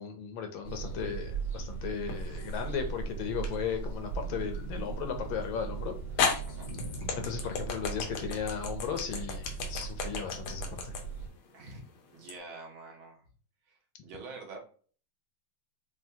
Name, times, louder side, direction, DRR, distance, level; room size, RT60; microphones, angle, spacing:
voice 1, 0.0-5.9 7.1-10.9, left 7 dB, 75° left, 6 dB, 1.4 m, -36 dB
sound 1, 0.6-11.3, right 5 dB, 25° right, 1.2 m, -38 dB
sound 2, 2.1-2.7 3.4-3.5 5.4-5.5 6.2-12.4, left 5 dB, 90° left, 1.7 m, -34 dB
voice 2, 6.5-6.8 11.5-11.8 12.1-13.3 13.7-14.6, right 3 dB, 70° right, 0 dB, 1.8 m, -46 dB
5.7 x 2.4 x 2.7 m, 0.42 s
omnidirectional pair, 2.3 m